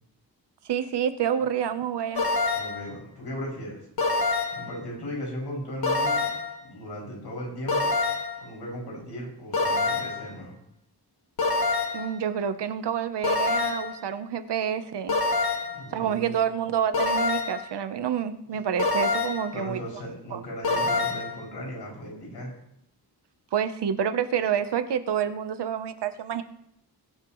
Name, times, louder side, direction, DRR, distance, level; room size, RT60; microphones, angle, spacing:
voice 1, 0.7-2.2 11.9-15.2 15.9-19.8 20.3-20.4 23.5-26.4, right 8 dB, 90° right, 10 dB, 1.0 m, -28 dB
sound 1, 2.2-2.9 4.0-4.7 5.8-6.6 7.7-8.4 9.5-10.3 11.4-12.1 13.2-14.0 15.1-15.8 16.9-17.7 18.8-19.5 20.6-21.4, left 3 dB, 65° left, 1.7 m, -26 dB
voice 2, 2.5-3.8 4.5-6.3 6.6-7.9 8.4-10.6 15.7-16.4 19.5-22.5, equal, 85° left, -3 dB, 6.4 m, -37 dB
20.5 x 9.9 x 3.1 m, 0.79 s
wide cardioid pair, 130°, 40 cm